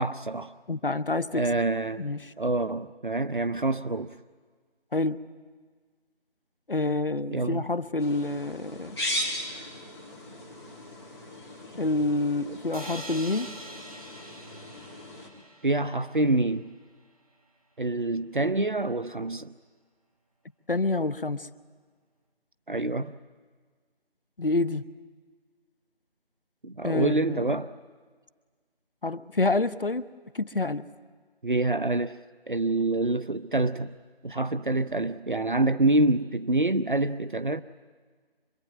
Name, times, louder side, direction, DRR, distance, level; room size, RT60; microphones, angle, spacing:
voice 1, 0.0-0.5 1.3-2.0 2.4-4.1 7.3-7.6 15.6-16.7 17.8-19.5 22.7-23.1 26.6-27.7 31.4-32.2 32.5-34.0 34.2-37.6, right 2 dB, 55° right, 0.7 m, -26 dB
voice 2, 0.7-1.5 2.0-2.3 4.9-5.2 6.7-9.0 11.8-13.5 20.7-21.5 24.4-24.8 26.8-27.5 29.0-30.0 30.3-30.9, left 2 dB, 65° left, 1.0 m, -27 dB
sound 1, 8.0-15.3, equal, 25° left, 3.4 m, -38 dB
sound 2, 12.7-16.5, right 1 dB, 35° right, 2.0 m, -44 dB
25.5 x 23.0 x 9.3 m
figure-of-eight pair, 175°, 30 cm